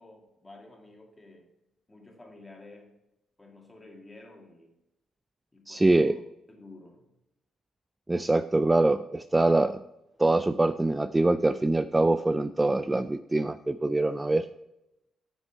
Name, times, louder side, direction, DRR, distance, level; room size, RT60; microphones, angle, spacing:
voice 1, 0.0-1.5 1.9-2.9 3.4-4.7 5.5-6.2 6.5-7.0, left 2 dB, 20° left, 1 dB, 2.1 m, -51 dB
voice 2, 5.7-6.2 8.1-9.8 10.2-14.5, right 2 dB, 15° right, 11 dB, 0.3 m, -24 dB
9.8 x 6.0 x 4.5 m, 0.90 s
cardioid pair, 90°, 0 cm